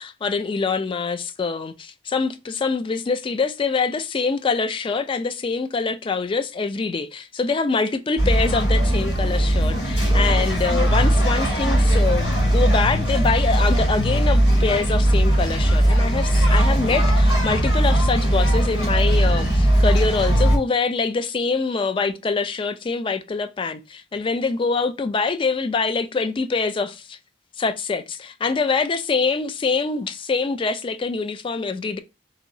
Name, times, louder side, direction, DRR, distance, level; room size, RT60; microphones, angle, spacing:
voice 1, 0.0-27.2 27.6-32.0, left 4 dB, 30° left, 0.3 m, -24 dB
sound 1, 8.2-20.6, right 1 dB, 75° left, 1.9 m, -19 dB
3.0 x 2.7 x 2.6 m
head